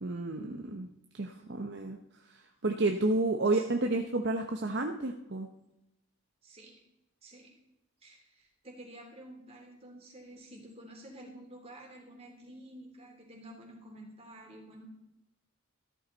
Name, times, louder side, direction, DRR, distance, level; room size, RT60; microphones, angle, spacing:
voice 1, 0.0-0.9 1.1-2.0 2.3-5.5, right 2 dB, 50° right, 4 dB, 0.9 m, -31 dB
voice 2, 6.4-6.8 7.2-7.5 8.0-14.9, right 1 dB, 25° right, 0 dB, 3.2 m, -50 dB
14.0 x 12.5 x 4.0 m, 0.93 s
head